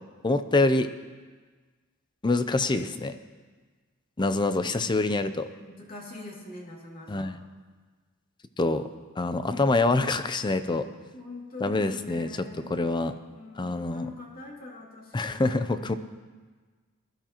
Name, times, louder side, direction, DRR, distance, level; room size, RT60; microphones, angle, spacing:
voice 1, 0.2-0.9 2.2-3.2 4.2-5.5 7.1-7.4 8.6-8.8 9.2-10.9 11.6-12.3 12.7-13.1 13.6-14.1 15.1-16.0, left 2 dB, 20° left, 10 dB, 0.5 m, -25 dB
voice 2, 5.8-7.3 11.1-12.9 13.3-15.4, left 2 dB, 40° left, -2 dB, 2.4 m, -43 dB
20.0 x 12.5 x 3.0 m, 1.4 s
head